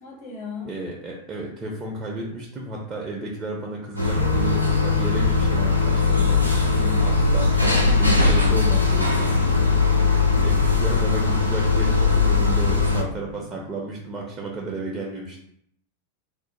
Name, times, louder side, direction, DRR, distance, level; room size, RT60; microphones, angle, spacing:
voice 1, 0.0-0.7 6.8-7.2, left 5 dB, 50° left, -2 dB, 0.8 m, -36 dB
voice 2, 0.6-6.6 7.0-10.1 10.4-15.4, right 2 dB, 25° right, -2 dB, 0.4 m, -33 dB
sound 1, 4.0-13.0, left 4 dB, 90° left, 0.4 m, -20 dB
sound 2, 4.1-13.8, left 7 dB, 70° left, 1.3 m, -35 dB
sound 3, 5.6-10.6, right 3 dB, 90° right, 0.4 m, -28 dB
2.4 x 2.0 x 2.9 m, 0.71 s
figure-of-eight pair, 90°, 0 cm